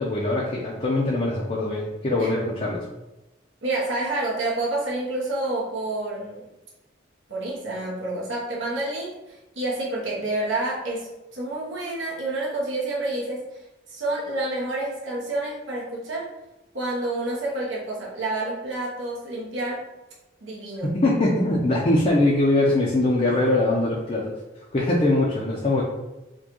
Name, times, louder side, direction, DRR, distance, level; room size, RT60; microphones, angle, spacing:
voice 1, 0.0-2.8 20.8-24.3 24.7-25.8, left 2 dB, 35° left, -4 dB, 0.5 m, -22 dB
voice 2, 3.6-6.5 7.3-13.6 13.9-16.3 16.7-19.8 20.4-20.9, right 2 dB, 80° right, -5 dB, 1.0 m, -29 dB
4.4 x 2.2 x 2.9 m, 1.0 s
head